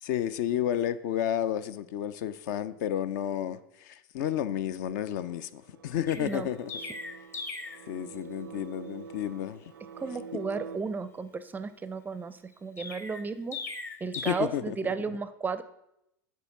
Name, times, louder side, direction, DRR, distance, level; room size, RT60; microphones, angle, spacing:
voice 1, 0.0-6.7 7.9-9.7 14.3-14.8, left 10 dB, 60° left, 14 dB, 0.5 m, -31 dB
sound 1, 4.8-10.8, right 6 dB, 80° right, 0.5 m, -46 dB
Chirp tweet, 6.1-7.9 12.8-14.3, left 3 dB, 20° left, 0.7 m, -39 dB
voice 2, 6.2-6.5 10.0-13.6 14.0-15.6, right 4 dB, 15° right, 13 dB, 0.4 m, -34 dB
6.8 x 4.6 x 5.9 m, 0.82 s
hypercardioid pair, 95°, 11 cm